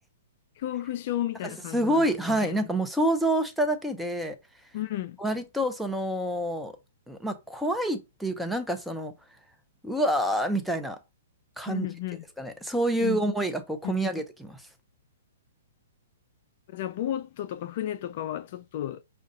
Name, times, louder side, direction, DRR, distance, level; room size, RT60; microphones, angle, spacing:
voice 1, 0.6-2.5 4.7-5.2 11.7-12.2 13.0-13.2 13.8-14.0 16.7-19.0, left 12 dB, 50° left, 0.4 m, -33 dB
voice 2, 1.4-4.4 5.2-6.7 7.1-9.1 9.8-11.0 11.6-11.9 12.4-14.6, right 1 dB, ahead, 0.7 m, -27 dB
6.3 x 2.3 x 2.7 m
hypercardioid pair, 140°, 0 cm